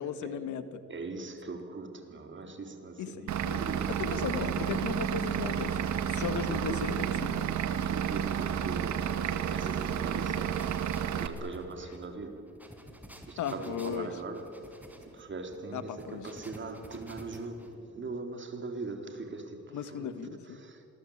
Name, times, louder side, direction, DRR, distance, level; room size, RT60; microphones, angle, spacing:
voice 1, 0.0-0.8 3.0-5.8 6.1-7.6 13.4-14.1 15.7-16.3 19.7-20.6, left 7 dB, 75° left, 1.8 m, -36 dB
voice 2, 0.9-4.0 6.5-6.9 7.9-10.7 11.1-12.5 13.3-20.8, right 3 dB, 40° right, 3.9 m, -41 dB
Vehicle / Engine, 3.3-11.3, right 8 dB, 70° right, 1.8 m, -31 dB
sound 1, 10.5-17.7, right 1 dB, 5° right, 4.5 m, -51 dB
26.5 x 20.5 x 9.0 m
cardioid pair, 90°, 30 cm